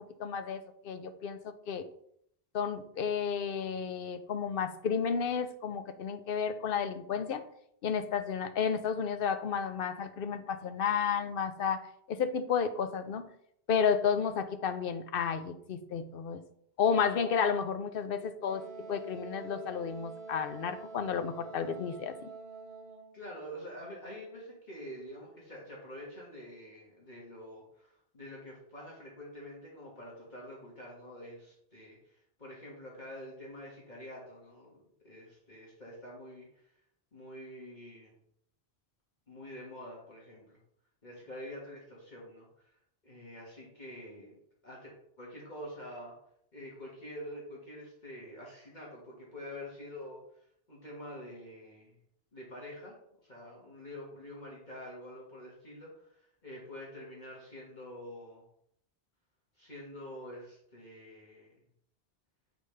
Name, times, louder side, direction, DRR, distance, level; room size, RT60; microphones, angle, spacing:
voice 1, 0.0-1.9 2.5-7.4 7.8-13.2 13.7-16.4 16.8-18.6 18.9-22.3, left 6 dB, 65° left, 9 dB, 0.8 m, -32 dB
Wind instrument woodwind instrument, 18.5-23.2, right 4 dB, 90° right, 1.4 m, -46 dB
voice 2, 23.1-36.6 37.1-38.2 39.3-40.6 41.0-42.7 43.0-44.3 44.6-46.1 46.5-50.2 50.7-51.9 52.3-52.9 53.2-58.4 59.6-61.5, equal, 45° left, -4 dB, 1.9 m, -47 dB
8.2 x 5.2 x 3.2 m, 0.71 s
omnidirectional pair, 1.1 m